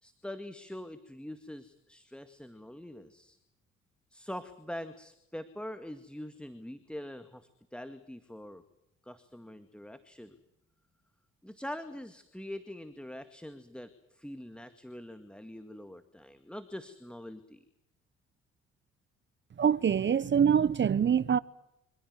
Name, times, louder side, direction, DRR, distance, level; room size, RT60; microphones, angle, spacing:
voice 1, 0.0-3.4 4.1-8.6 9.0-10.4 11.4-17.6, left 1 dB, 5° left, 2.1 m, -44 dB
voice 2, 19.6-21.4, right 8 dB, 40° right, 0.9 m, -24 dB
25.5 x 15.5 x 9.7 m
hypercardioid pair, 55°, 30 cm